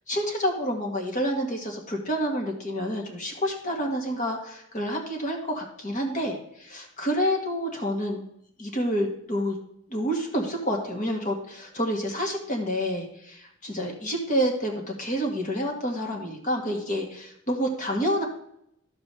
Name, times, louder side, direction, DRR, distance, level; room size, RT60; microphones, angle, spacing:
voice 1, 0.1-8.2 8.6-9.6 9.9-18.2, equal, 40° left, 1 dB, 1.9 m, -28 dB
12.0 x 7.2 x 3.3 m, 0.74 s
head